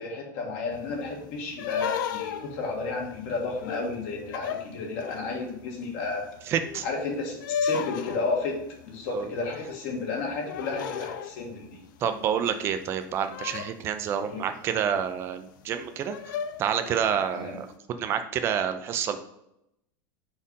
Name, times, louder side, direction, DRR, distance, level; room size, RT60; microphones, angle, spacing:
voice 1, 0.0-6.3 6.8-8.6 8.8-11.8 14.3-14.4 17.3-17.6, left 3 dB, 50° left, 0 dB, 1.5 m, -32 dB
sound 1, 0.7-5.5 6.0-12.7 13.0-14.6 15.2-15.3 15.7-15.8 16.1-17.2, left 7 dB, 75° left, 0.5 m, -35 dB
voice 2, 6.5-6.8 9.1-9.3 12.0-16.2 16.6-19.2, right 8 dB, 25° right, 9 dB, 0.4 m, -28 dB
4.8 x 4.4 x 5.4 m, 0.81 s
supercardioid pair, 175°, 11 cm